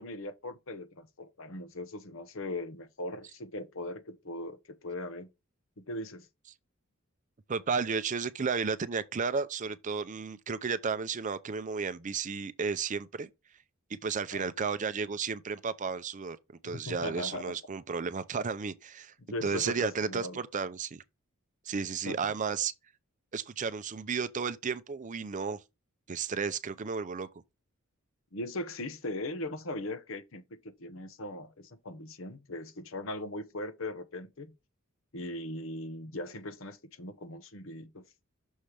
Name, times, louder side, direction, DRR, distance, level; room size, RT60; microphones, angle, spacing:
voice 1, 0.0-5.3 5.9-6.3 14.3-14.5 16.6-17.5 19.3-20.4 22.1-22.2 28.3-34.5 35.1-38.0, left 1 dB, 65° left, 0.9 m, -39 dB
voice 2, 7.5-13.3 14.0-16.4 16.6-19.1 19.4-21.0 21.7-22.7 23.3-25.6 26.1-27.3, right 5 dB, 35° right, 0.5 m, -33 dB
6.4 x 3.3 x 5.7 m
head